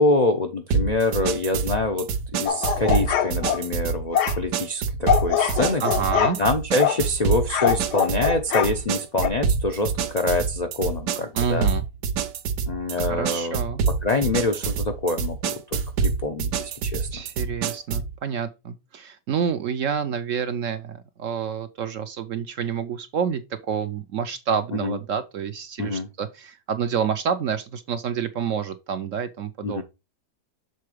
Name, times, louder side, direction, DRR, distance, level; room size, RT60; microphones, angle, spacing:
voice 1, 0.0-5.8 6.4-11.7 12.7-13.6 14.0-17.1 24.8-25.0 25.8-26.1 29.6-29.8, left 2 dB, 60° left, 0.4 m, -25 dB
sound 1, 0.7-18.1, right 5 dB, 90° right, 1.4 m, -27 dB
sound 2, 2.5-3.6 4.1-4.4 5.1-6.4 6.8-7.0 7.5-8.7 9.2-9.3, left 9 dB, 80° left, 1.3 m, -23 dB
voice 2, 5.8-6.4 11.3-11.8 13.0-13.8 17.1-29.8, right 7 dB, 65° right, 0.8 m, -28 dB
6.8 x 3.7 x 4.8 m
omnidirectional pair, 1.8 m